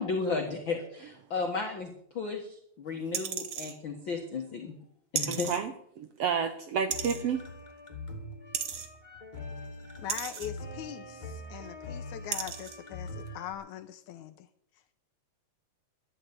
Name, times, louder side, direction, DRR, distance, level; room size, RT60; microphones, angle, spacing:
voice 1, 0.0-2.5 2.8-4.7 5.1-5.5, left 4 dB, 45° left, 3 dB, 1.7 m, -33 dB
sound 1, 3.1-3.7 5.2-5.6 6.9-7.2 8.5-8.9 10.1-10.5 11.5-11.6 12.3-12.8 13.3-13.4, right 8 dB, 55° right, 1.6 m, -34 dB
voice 2, 5.3-7.4, right 7 dB, 75° right, 8 dB, 1.4 m, -31 dB
sound 2, 6.9-13.5, left 2 dB, 15° left, 2.0 m, -43 dB
voice 3, 10.0-14.5, left 10 dB, 75° left, 6 dB, 1.9 m, -41 dB
12.5 x 10.5 x 8.1 m, 0.69 s
omnidirectional pair, 3.9 m